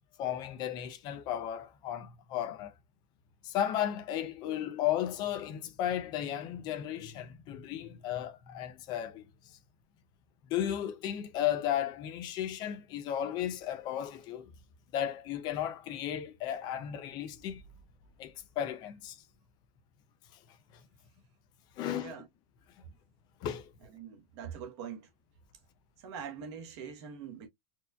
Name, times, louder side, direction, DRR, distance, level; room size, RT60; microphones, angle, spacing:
voice 1, 0.2-2.7 3.4-9.3 10.4-14.5 14.9-17.6 18.2-19.2 20.7-20.8 21.8-22.2 23.4-23.7, left 10 dB, 20° left, 0.4 m, -34 dB
voice 2, 21.9-22.3 23.9-25.1 26.0-27.5, right 7 dB, 45° right, 1.0 m, -43 dB
4.3 x 2.6 x 2.3 m
supercardioid pair, 170°, 20 cm